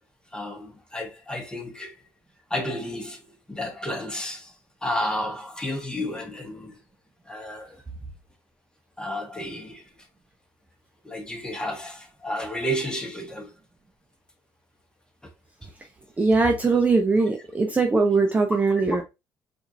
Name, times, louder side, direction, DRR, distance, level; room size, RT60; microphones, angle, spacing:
voice 1, 0.3-1.9 2.5-3.2 3.5-4.5 4.8-6.7 7.3-7.8 9.0-9.8 11.0-13.5, equal, 10° left, 1.2 m, -31 dB
voice 2, 16.2-19.0, right 3 dB, 20° right, 0.6 m, -21 dB
4.2 x 2.6 x 2.5 m
supercardioid pair, 90°, 8 cm